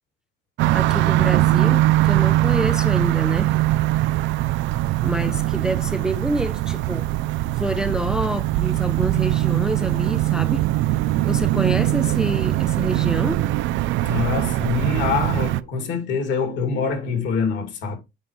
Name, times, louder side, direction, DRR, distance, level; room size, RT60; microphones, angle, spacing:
sound 1, 0.6-15.6, right 16 dB, 65° right, 0.5 m, -21 dB
voice 1, 0.7-3.5 5.0-7.1 7.5-10.7 11.2-13.5, right 1 dB, 5° right, 0.4 m, -27 dB
voice 2, 14.0-18.0, left 5 dB, 60° left, 2.5 m, -25 dB
8.0 x 5.3 x 3.1 m
cardioid pair, 155°, 21 cm